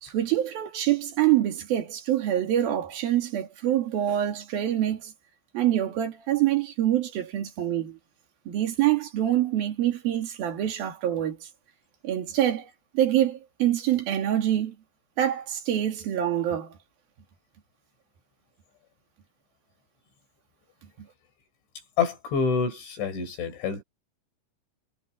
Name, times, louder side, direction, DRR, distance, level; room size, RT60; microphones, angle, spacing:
voice 1, 0.0-5.1 5.5-8.0 8.5-11.5 12.0-12.7 12.9-14.8 15.2-16.7 21.0-21.1, right 12 dB, 60° right, 4.0 m, -25 dB
voice 2, 22.0-23.8, left 5 dB, 90° left, 7.4 m, -27 dB
omnidirectional pair, 5.1 m